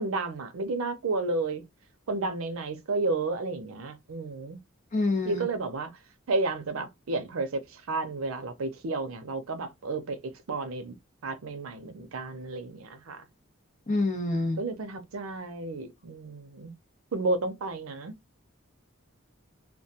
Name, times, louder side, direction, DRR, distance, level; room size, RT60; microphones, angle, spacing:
voice 1, 0.0-1.6 2.1-4.6 5.2-5.9 6.3-7.6 7.9-10.2 10.5-10.9 11.2-13.2 14.6-16.7 17.1-18.1, right 3 dB, 85° right, 0.5 m, -31 dB
voice 2, 4.9-5.4 13.9-14.6, left 2 dB, 40° left, 0.7 m, -27 dB
2.2 x 2.2 x 2.7 m
head